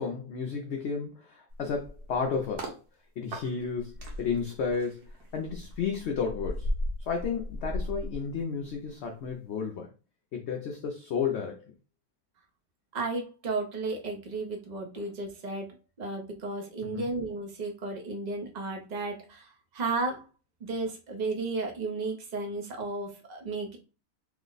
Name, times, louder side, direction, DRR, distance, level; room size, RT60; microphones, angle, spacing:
voice 1, 0.0-2.7 3.2-6.7 7.1-9.9 10.3-11.6 15.0-15.1 16.8-17.1, left 6 dB, 65° left, 0.7 m, -32 dB
sound 1, 1.5-2.8 3.3-8.9 9.2-9.5, left 1 dB, 85° right, 1.4 m, -37 dB
voice 2, 12.9-15.7 16.0-19.5 19.7-20.2 20.6-23.8, right 3 dB, 45° right, 0.6 m, -33 dB
3.2 x 2.1 x 3.8 m
omnidirectional pair, 1.6 m